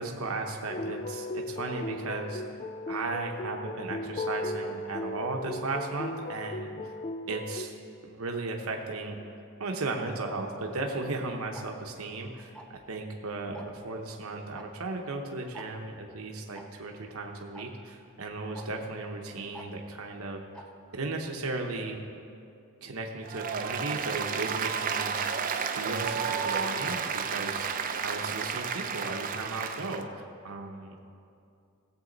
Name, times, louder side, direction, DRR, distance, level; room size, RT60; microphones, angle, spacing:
voice 1, 0.0-2.4 2.9-6.9 7.3-7.7 8.0-9.2 9.6-12.5 12.9-20.4 20.9-22.0 22.8-25.1 25.7-27.7 28.0-31.0, right 3 dB, 70° right, 2 dB, 0.9 m, -35 dB
sound 1, 0.7-7.7, left 2 dB, 30° left, 0.3 m, -36 dB
Tick-tock, 11.5-11.7 12.5-12.8 13.5-13.8 14.5-14.7 14.9-15.0 15.5-15.7 16.5-16.6 17.5-17.7 18.5-18.7 19.5-19.7 20.5-20.7, right 1 dB, 5° left, 0.7 m, -45 dB
Applause, 23.2-30.0, right 6 dB, 40° right, 0.5 m, -32 dB
17.0 x 7.5 x 4.0 m, 2.5 s
head